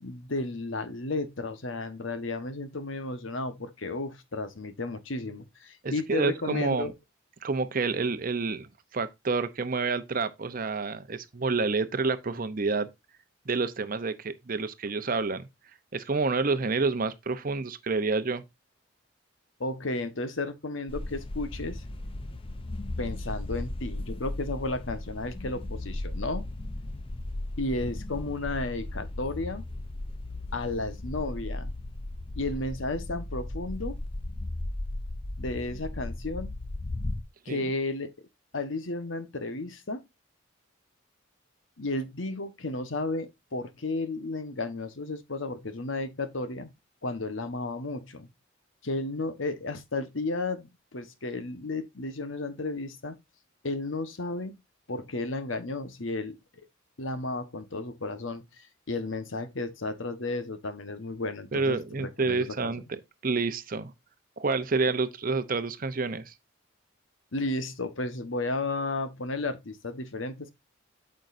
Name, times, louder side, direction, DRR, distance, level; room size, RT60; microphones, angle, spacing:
voice 1, 0.0-6.9 19.6-21.8 23.0-26.4 27.6-29.6 30.5-31.7 32.4-33.9 35.4-36.5 37.4-38.1 38.5-40.0 41.8-46.7 47.0-48.3 48.8-53.1 53.6-54.5 54.9-56.4 57.0-62.7 67.3-70.5, left 2 dB, 70° left, 1.2 m, -33 dB
voice 2, 5.8-6.9 7.4-12.9 13.5-15.5 15.9-18.4 37.5-37.7 61.5-63.0 63.2-63.9 64.4-66.3, right 4 dB, 45° right, 0.7 m, -28 dB
sound 1, 20.9-37.2, left 1 dB, 25° left, 0.5 m, -36 dB
8.9 x 6.4 x 2.6 m
head